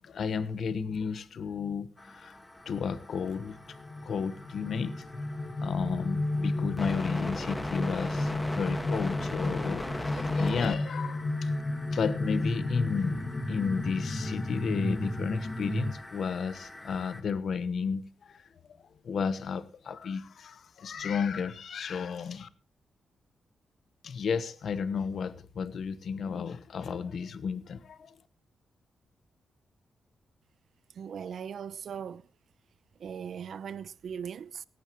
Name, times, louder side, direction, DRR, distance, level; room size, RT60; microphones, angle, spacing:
voice 1, 0.0-2.4 2.6-3.8 4.0-5.1 5.6-11.5 11.9-18.5 19.0-22.5 24.0-28.2, left 6 dB, 65° left, 1.1 m, -33 dB
sound 1, 2.0-17.2, left 1 dB, 15° left, 1.7 m, -41 dB
sound 2, 3.5-15.9, left 2 dB, 40° left, 2.0 m, -32 dB
voice 2, 31.0-32.2 33.0-34.6, right 7 dB, 65° right, 0.7 m, -39 dB
17.5 x 15.5 x 3.1 m
cardioid pair, 105°, 0 cm